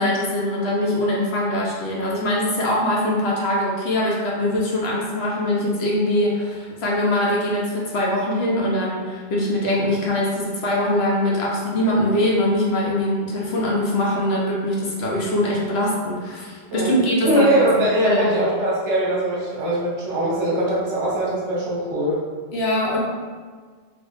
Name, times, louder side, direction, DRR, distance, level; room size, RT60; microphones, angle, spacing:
voice 1, 0.0-17.7 18.0-18.3 22.5-23.0, left 1 dB, 65° left, -4 dB, 1.0 m, -22 dB
voice 2, 16.7-22.2, right 1 dB, 85° right, -5 dB, 1.3 m, -21 dB
3.0 x 2.5 x 3.4 m, 1.5 s
omnidirectional pair, 1.2 m